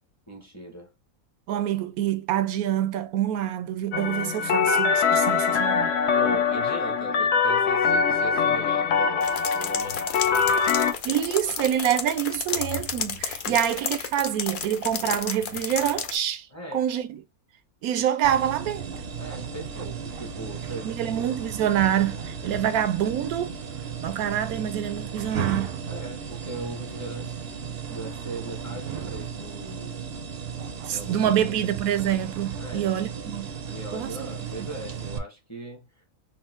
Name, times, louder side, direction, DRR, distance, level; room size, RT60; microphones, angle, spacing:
voice 1, 0.3-0.9 6.1-11.7 13.5-13.6 16.5-16.9 19.2-21.2 22.5-22.6 25.9-27.3 27.6-29.9 30.9-31.6 32.6-32.9 33.6-36.1, right 2 dB, 15° left, 0.7 m, -39 dB
voice 2, 1.5-5.9 11.0-16.5 16.7-17.2 17.8-18.8 20.8-23.6 24.0-25.7 30.9-33.5 33.9-34.3, right 10 dB, 90° right, 1.1 m, -26 dB
sound 1, 3.9-10.9, left 6 dB, 60° left, 0.8 m, -23 dB
sound 2, 9.2-16.2, left 7 dB, 85° left, 0.4 m, -32 dB
sound 3, 18.2-35.2, right 7 dB, 60° right, 0.6 m, -35 dB
4.1 x 2.0 x 4.2 m
omnidirectional pair, 1.5 m